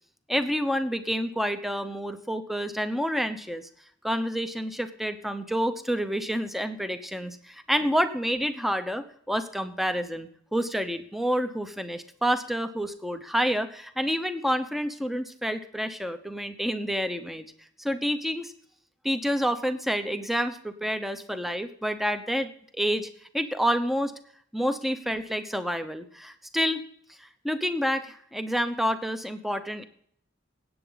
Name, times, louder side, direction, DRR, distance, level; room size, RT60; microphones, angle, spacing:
voice 1, 0.3-3.7 4.0-17.5 17.8-18.5 19.0-23.1 23.3-24.2 24.5-26.8 27.2-29.8, equal, ahead, 9 dB, 0.9 m, -28 dB
17.0 x 8.6 x 4.0 m, 0.64 s
head